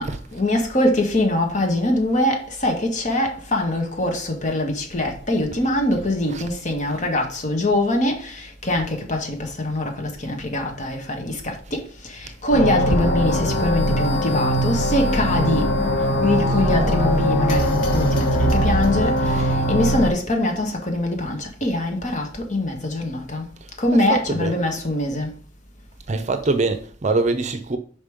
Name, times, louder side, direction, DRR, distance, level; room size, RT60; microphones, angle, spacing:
voice 1, 0.0-15.7 16.2-23.4 23.8-25.3, left 1 dB, 40° left, 1.6 m, -23 dB
sound 1, 12.5-20.1, equal, 85° left, 1.8 m, -21 dB
voice 2, 23.6-24.6 26.1-27.8, right 3 dB, 40° right, 0.6 m, -25 dB
5.3 x 5.1 x 5.1 m
head